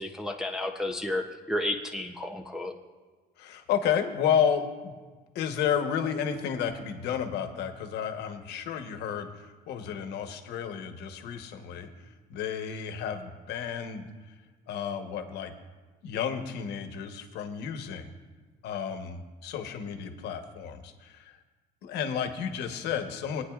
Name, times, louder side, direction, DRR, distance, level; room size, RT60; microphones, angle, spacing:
voice 1, 0.0-2.7, left 1 dB, 5° right, 2 dB, 0.7 m, -32 dB
voice 2, 3.4-4.9 5.3-11.9 12.3-14.1 14.7-15.5 16.0-18.1 18.6-21.4 21.8-23.4, left 8 dB, 80° left, 6 dB, 1.1 m, -31 dB
21.0 x 9.7 x 2.4 m, 1.3 s
cardioid pair, 110°, 17 cm